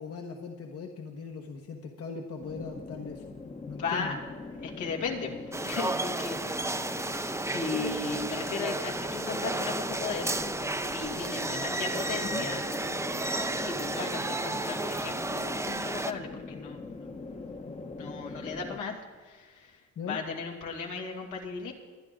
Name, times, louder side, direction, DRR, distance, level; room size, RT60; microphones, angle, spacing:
voice 1, 0.0-3.3 3.7-4.2 12.3-12.4 19.9-20.2, left 5 dB, 50° left, 3 dB, 1.4 m, -39 dB
sound 1, 2.4-18.8, left 3 dB, 20° left, 1.0 m, -42 dB
voice 2, 3.8-4.2 4.5-6.9 7.4-10.3 10.8-12.6 13.6-17.4 18.0-21.7, left 4 dB, 80° left, 0 dB, 2.6 m, -36 dB
sound 2, 5.5-16.1, right 2 dB, 10° right, 0.6 m, -32 dB
23.5 x 10.0 x 3.8 m, 1.5 s
cardioid pair, 90°, 30 cm